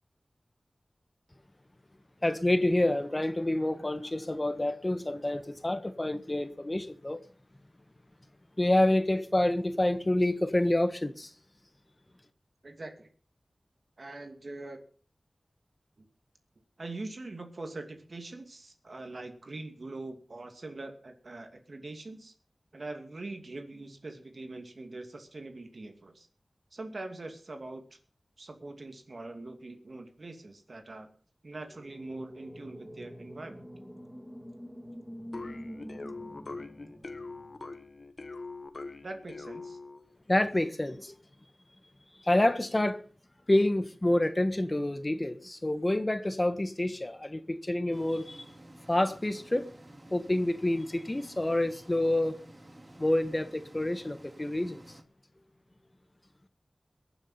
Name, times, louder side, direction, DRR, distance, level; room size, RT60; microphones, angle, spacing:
voice 1, 2.2-7.2 8.6-11.3 40.3-41.1 42.2-43.0 43.5-48.5 48.9-49.7 50.1-52.3 53.0-54.8, left 1 dB, 30° left, 1.4 m, -28 dB
voice 2, 12.6-13.1 14.0-14.8 16.0-16.1 16.8-22.3 22.7-26.3 26.7-28.0 28.4-31.1 31.4-33.6 39.0-39.8, right 2 dB, 65° right, 2.5 m, -43 dB
sound 1, 31.7-37.8, equal, ahead, 2.9 m, -46 dB
sound 2, 35.3-40.1, left 3 dB, 65° left, 1.3 m, -42 dB
sound 3, 47.9-55.0, right 1 dB, 40° right, 2.6 m, -52 dB
22.0 x 7.3 x 5.6 m
cardioid pair, 40°, 0 cm